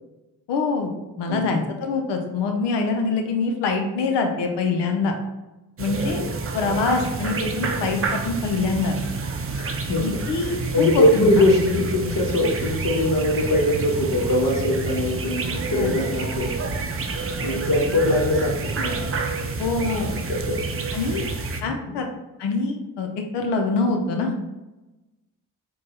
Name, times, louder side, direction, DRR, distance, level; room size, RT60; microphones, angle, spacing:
voice 1, 0.5-5.1 5.8-6.2 6.5-9.0 9.9-11.4 15.8-15.9 19.6-20.1 20.9-21.3 21.6-22.1 22.4-24.3, left 4 dB, 85° left, 4 dB, 0.6 m, -24 dB
voice 2, 1.3-1.6 6.0-6.4 9.5-16.5 17.4-19.1 20.3-20.6 20.8-21.2 21.6-22.0, left 1 dB, 50° left, -1 dB, 1.2 m, -22 dB
sound 1, 5.8-21.6, right 3 dB, 35° right, 0.5 m, -28 dB
4.4 x 2.3 x 3.0 m, 1.0 s
supercardioid pair, 40°, 41 cm